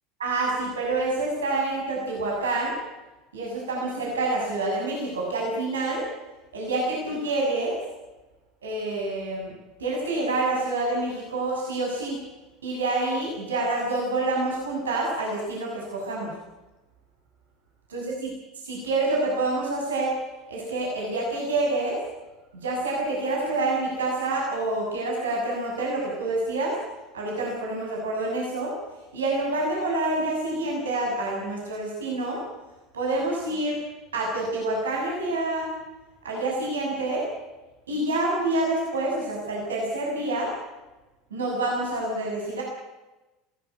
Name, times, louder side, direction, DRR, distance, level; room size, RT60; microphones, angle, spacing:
voice 1, 0.2-2.8 3.3-6.0 6.5-7.8 8.6-9.5 9.8-12.2 12.6-16.3 17.9-18.0 18.6-20.1 20.5-22.0 22.5-26.8 27.1-28.7 29.1-32.4 32.9-33.8 34.1-35.7 36.2-37.3 37.9-40.5 41.3-42.6, right 2 dB, 85° right, -2 dB, 6.9 m, -27 dB
22.0 x 18.0 x 9.7 m, 1.1 s
hypercardioid pair, 80°, 0 cm